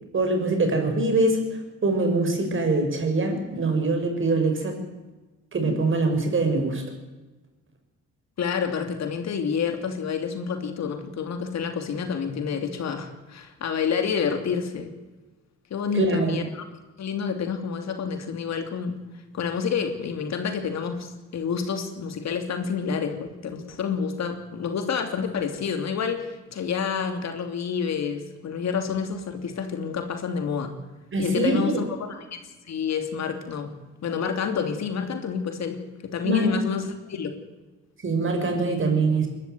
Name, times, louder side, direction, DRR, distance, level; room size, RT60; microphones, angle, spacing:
voice 1, 0.1-1.4 1.8-4.7 5.5-6.8 15.9-16.4 31.1-31.8 36.2-36.5 38.0-39.3, right 2 dB, 40° right, 5 dB, 6.0 m, -23 dB
voice 2, 8.4-14.9 15.7-16.6 17.0-19.0 19.3-30.7 31.2-32.4 32.7-33.7 34.0-37.3, left 6 dB, 60° left, 6 dB, 3.1 m, -28 dB
22.0 x 13.0 x 9.4 m, 1.2 s
cardioid pair, 90°, 30 cm